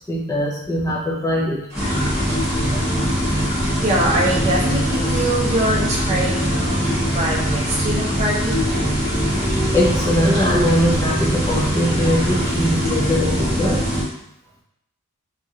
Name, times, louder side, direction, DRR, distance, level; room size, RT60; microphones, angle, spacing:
voice 1, 0.1-1.6 9.7-13.8, equal, 15° left, -5 dB, 0.5 m, -21 dB
sound 1, 1.7-14.0, equal, 5° right, 0.8 m, -22 dB
sound 2, 1.7-13.1, equal, 50° right, 1.0 m, -34 dB
voice 2, 3.8-8.6, right 1 dB, 30° right, -3 dB, 0.6 m, -23 dB
2.9 x 2.4 x 2.7 m, 0.77 s
head